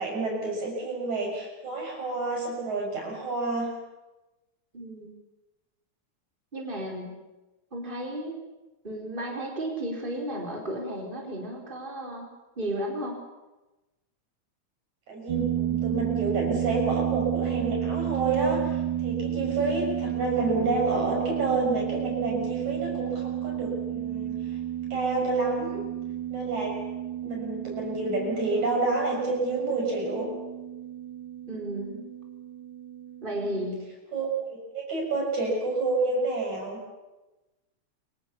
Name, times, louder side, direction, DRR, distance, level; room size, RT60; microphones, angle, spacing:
voice 1, 0.0-3.8 15.1-18.7 19.0-24.4 24.9-25.8 26.3-26.8 27.2-30.3 33.4-33.7 34.1-36.8, right 3 dB, 70° right, 0 dB, 8.3 m, -29 dB
voice 2, 4.7-5.1 6.5-7.2 7.7-8.4 8.8-12.3 12.6-13.2 31.5-32.0 33.2-33.9, right 1 dB, 15° right, 0 dB, 4.8 m, -33 dB
sound 1, 15.3-33.7, right 11 dB, 90° right, 2.8 m, -32 dB
29.0 x 24.5 x 7.1 m, 1.1 s
omnidirectional pair, 3.4 m